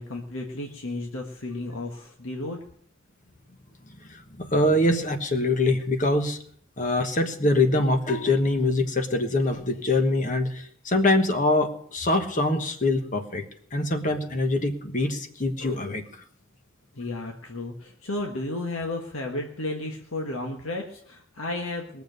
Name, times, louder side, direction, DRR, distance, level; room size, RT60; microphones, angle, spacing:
voice 1, 0.0-2.6 16.9-22.0, left 2 dB, 90° left, 2 dB, 1.4 m, -33 dB
voice 2, 4.1-6.4 6.8-13.4 13.7-16.0, left 2 dB, 40° left, 7 dB, 1.3 m, -24 dB
20.5 x 7.1 x 6.7 m, 0.62 s
head